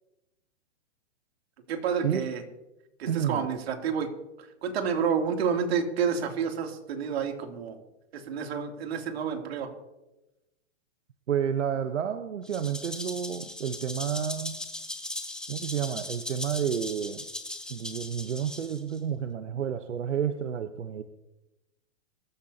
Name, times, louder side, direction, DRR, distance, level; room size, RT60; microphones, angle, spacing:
voice 1, 1.7-2.4 3.0-4.1 4.4-7.8 8.1-9.7, right 6 dB, 60° right, 4 dB, 2.9 m, -29 dB
voice 2, 3.1-3.4 11.3-14.6 15.5-17.2 17.7-21.0, right 8 dB, 85° right, 9 dB, 1.0 m, -30 dB
Rattle (instrument), 12.4-19.0, left 1 dB, ahead, 1.4 m, -38 dB
24.0 x 13.5 x 2.8 m, 0.98 s
hypercardioid pair, 135°, 35 cm